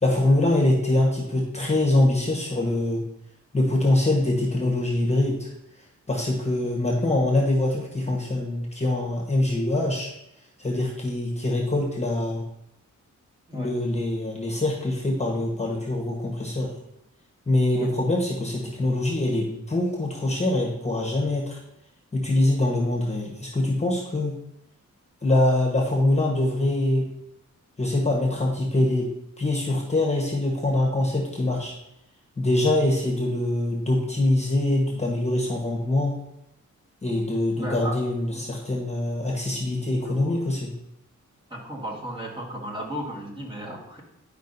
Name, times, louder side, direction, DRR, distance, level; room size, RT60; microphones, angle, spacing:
voice 1, 0.0-3.0 3.5-5.5 6.1-10.1 10.6-12.4 13.5-16.7 17.5-21.6 22.1-24.3 25.2-27.1 27.8-29.1 29.4-31.7 32.4-36.2 37.0-40.7, left 1 dB, 20° left, -1 dB, 1.2 m, -24 dB
voice 2, 13.5-13.8 17.7-17.9 37.5-38.0 38.3-38.4 40.0-40.4 41.5-44.0, right 1 dB, 15° right, -3 dB, 1.6 m, -35 dB
10.5 x 5.1 x 2.7 m, 0.81 s
wide cardioid pair, 110°, 30 cm